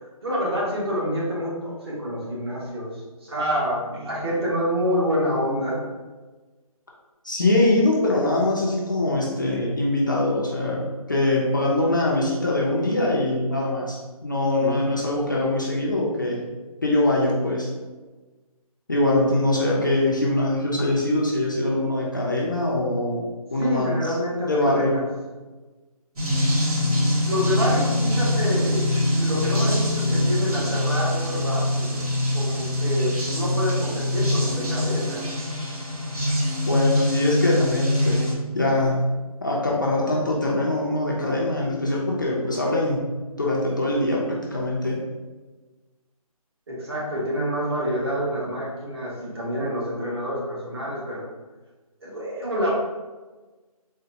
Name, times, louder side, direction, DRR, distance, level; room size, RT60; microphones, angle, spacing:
voice 1, 0.2-5.8 14.6-14.9 23.6-25.0 27.2-28.8 29.1-32.1 32.3-35.2 46.7-51.2 52.0-52.7, equal, 40° right, -5 dB, 1.1 m, -27 dB
voice 2, 7.2-16.4 16.8-17.7 18.9-23.2 23.5-23.9 24.5-25.0 36.7-38.3 38.5-39.0 39.4-43.1 43.4-45.0, left 2 dB, 35° left, -4 dB, 0.4 m, -23 dB
sound 1, 26.2-38.3, left 1 dB, 80° right, 1.2 m, -24 dB
3.9 x 2.1 x 2.6 m, 1.2 s
figure-of-eight pair, 165°, 19 cm